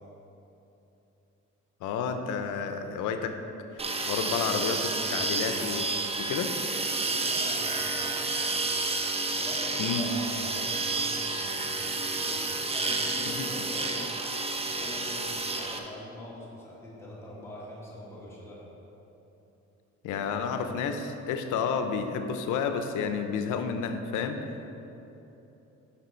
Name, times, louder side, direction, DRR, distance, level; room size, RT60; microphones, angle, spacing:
voice 1, 1.8-3.3 3.7-5.9 6.2-6.5 9.8-10.0 13.3-13.5 20.0-24.4, left 6 dB, 90° left, 7 dB, 0.7 m, -31 dB
sound 1, 3.8-15.8, right 3 dB, 20° right, 0.8 m, -30 dB
voice 2, 7.0-8.9 9.4-12.4 12.7-14.2 14.7-18.6, left 1 dB, 10° left, -7 dB, 2.1 m, -43 dB
10.0 x 5.8 x 4.4 m, 3.0 s
cardioid pair, 90°, 30 cm